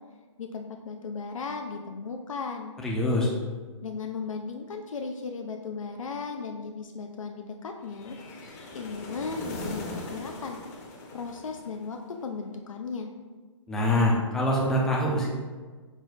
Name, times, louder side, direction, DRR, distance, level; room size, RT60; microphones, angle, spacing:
voice 1, 0.4-2.7 3.8-8.2 8.7-10.6 11.1-13.1, left 4 dB, 90° left, 3 dB, 0.4 m, -36 dB
voice 2, 2.8-3.3 13.7-15.3, left 1 dB, 5° left, -3 dB, 0.4 m, -24 dB
sound 1, 7.9-12.1, left 2 dB, 35° left, 0.7 m, -40 dB
4.7 x 2.1 x 3.9 m, 1.4 s
hypercardioid pair, 140°, 16 cm